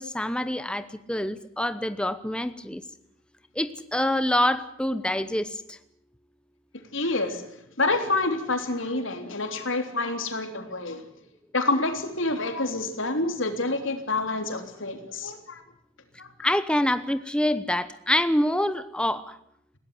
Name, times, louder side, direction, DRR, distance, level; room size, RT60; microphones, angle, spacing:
voice 1, 0.0-2.8 3.5-5.8 16.4-19.4, left 1 dB, 5° left, 12 dB, 0.9 m, -26 dB
voice 2, 6.9-7.4 7.8-11.0 11.5-15.6 16.2-16.3, left 2 dB, 70° left, 7 dB, 3.4 m, -27 dB
21.0 x 17.5 x 9.8 m, 0.74 s
head